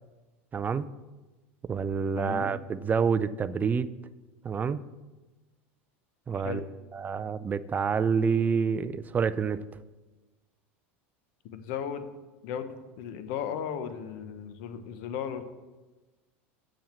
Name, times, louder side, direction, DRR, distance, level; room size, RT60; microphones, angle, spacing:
voice 1, 0.5-0.9 1.6-3.9 4.4-4.8 6.3-6.6 6.9-9.6, right 6 dB, 25° right, 14 dB, 0.5 m, -27 dB
voice 2, 2.1-2.5 6.4-6.6 11.5-12.0 12.4-15.4, left 8 dB, 70° left, 9 dB, 1.1 m, -36 dB
7.6 x 7.1 x 7.5 m, 1.2 s
supercardioid pair, 110°, 7 cm